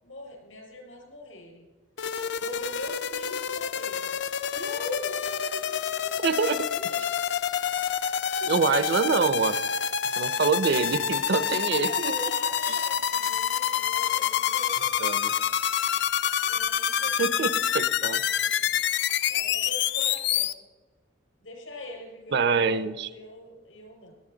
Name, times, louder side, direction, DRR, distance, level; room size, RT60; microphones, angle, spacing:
voice 1, 0.0-1.7 2.3-4.2 4.5-7.0 8.0-8.5 11.7-15.5 16.5-18.7 19.3-20.6 21.4-24.2, left 1 dB, 80° left, 0 dB, 4.8 m, -42 dB
sound 1, 2.0-20.5, left 8 dB, 60° left, 0.4 m, -27 dB
voice 2, 6.2-6.7 8.5-9.6 10.2-12.1 15.0-15.3 17.2-18.2 22.3-23.1, right 5 dB, 60° right, 15 dB, 0.6 m, -25 dB
20.5 x 9.1 x 3.9 m, 1.3 s
head